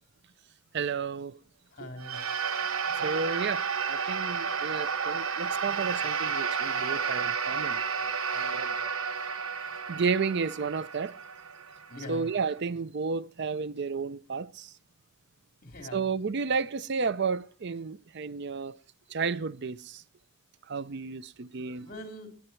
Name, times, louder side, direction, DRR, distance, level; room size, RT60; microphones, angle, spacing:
voice 1, 0.7-1.4 2.9-7.8 8.3-8.9 9.9-11.2 12.1-14.7 15.9-18.8 19.1-20.0 20.7-21.9, right 5 dB, 55° right, 0.5 m, -32 dB
voice 2, 1.7-2.4 11.9-12.3 15.6-16.1 21.8-22.3, left 1 dB, 45° left, 4.0 m, -42 dB
sound 1, 2.0-12.5, right 6 dB, 85° right, 1.3 m, -31 dB
20.0 x 9.8 x 4.5 m
head